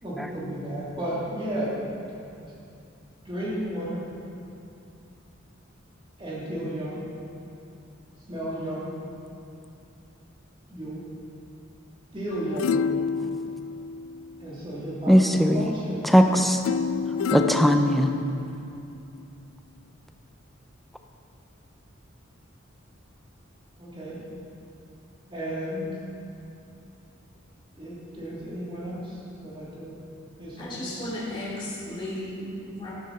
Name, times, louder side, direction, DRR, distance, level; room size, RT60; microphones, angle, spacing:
voice 1, 0.0-1.7 2.2-2.3 3.2-4.1 6.2-7.1 8.3-8.9 10.7-11.1 12.1-12.8 14.4-16.2 23.8-24.2 25.3-25.9 27.8-30.0 30.4-30.9, right 1 dB, 25° right, -7 dB, 3.1 m, -33 dB
sound 1, 12.3-14.6 16.6-18.7 19.2-19.3, left 6 dB, 85° left, 0.3 m, -29 dB
voice 2, 15.1-15.6 16.0-16.6 17.3-18.2, equal, ahead, 5 dB, 0.6 m, -19 dB
voice 3, 30.6-32.9, left 1 dB, 25° left, -10 dB, 2.7 m, -34 dB
12.5 x 12.0 x 4.3 m, 2.7 s
head